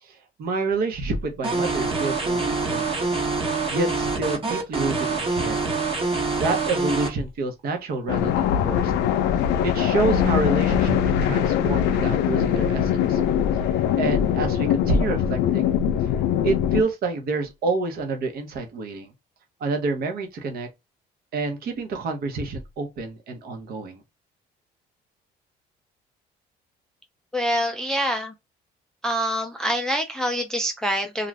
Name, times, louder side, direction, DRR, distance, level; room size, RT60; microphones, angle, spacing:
voice 1, 0.0-3.1 3.7-5.7 6.4-8.9 9.6-13.2 13.6-15.7 16.4-19.1 19.6-20.7 21.3-24.0, right 3 dB, 65° right, 0.9 m, -28 dB
sound 1, 1.4-7.1, right 3 dB, 30° right, 1.0 m, -25 dB
sound 2, 8.1-16.8, left 9 dB, 85° left, 0.4 m, -22 dB
voice 2, 27.3-28.3 29.0-31.3, equal, 5° left, 0.4 m, -25 dB
2.5 x 2.4 x 3.2 m
cardioid pair, 110°, 17 cm